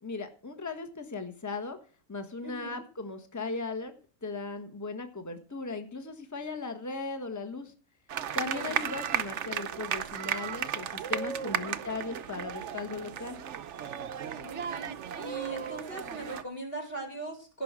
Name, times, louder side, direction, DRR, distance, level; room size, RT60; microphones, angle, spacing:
voice 1, 0.0-1.8 2.1-3.9 4.2-7.7 8.3-13.4, left 3 dB, 10° left, 7 dB, 1.3 m, -37 dB
voice 2, 2.4-2.8 8.4-8.9 11.6-11.8 14.3-17.6, right 2 dB, 40° left, 2 dB, 2.9 m, -40 dB
sound 1, 8.1-16.4, right 8 dB, 60° right, 1.0 m, -35 dB
17.0 x 5.9 x 6.1 m, 0.39 s
omnidirectional pair, 1.5 m